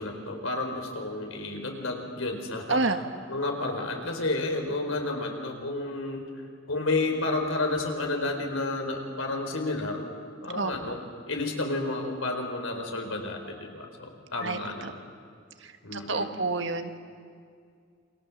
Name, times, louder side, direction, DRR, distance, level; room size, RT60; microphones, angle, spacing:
voice 1, 0.0-2.8 3.3-6.2 6.7-10.0 10.4-11.0 11.3-15.0 15.8-16.5, left 2 dB, 90° left, 3 dB, 4.5 m, -31 dB
voice 2, 2.7-3.0 10.5-10.7 14.4-14.9 15.6-16.9, right 3 dB, 65° right, 7 dB, 1.6 m, -29 dB
28.5 x 25.0 x 7.4 m, 2.3 s
head